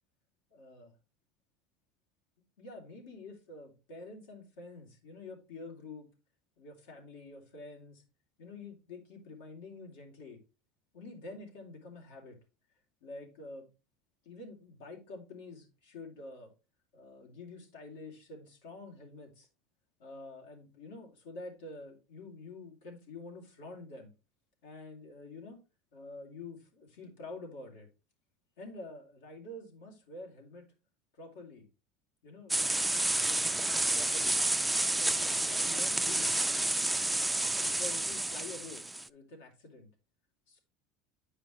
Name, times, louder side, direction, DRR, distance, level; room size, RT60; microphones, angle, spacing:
voice 1, 0.5-0.9 2.6-6.1 6.6-8.0 8.4-10.4 10.9-12.4 13.0-13.7 14.2-16.5 16.9-19.5 20.0-24.1 24.6-25.6 25.9-27.9 28.6-30.6 31.1-31.6 32.2-34.4 34.9-36.4 37.6-39.9 40.5-40.6, left 2 dB, 90° left, 1 dB, 2.8 m, -48 dB
sound 1, 32.5-39.1, right 2 dB, 5° right, 0.3 m, -30 dB
8.8 x 5.1 x 3.1 m, 0.29 s
supercardioid pair, 135°, 0 cm